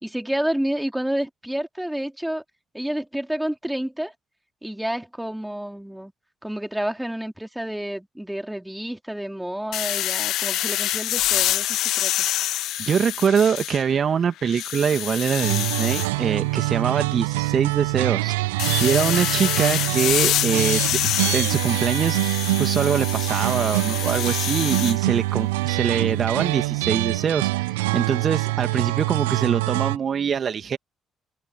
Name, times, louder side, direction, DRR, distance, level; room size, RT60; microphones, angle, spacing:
voice 1, 0.0-2.4 2.7-4.1 4.6-6.1 6.4-12.1, right 1 dB, 5° right, 3.7 m, -29 dB
sound 1, 9.7-14.0 14.4-16.1 18.6-25.0, left 14 dB, 70° left, 0.4 m, -26 dB
voice 2, 12.8-18.3 18.8-20.8 21.3-30.8, right 7 dB, 50° right, 2.3 m, -24 dB
sound 2, 15.4-30.0, right 21 dB, 80° right, 0.7 m, -25 dB
hypercardioid pair, 45°, 0 cm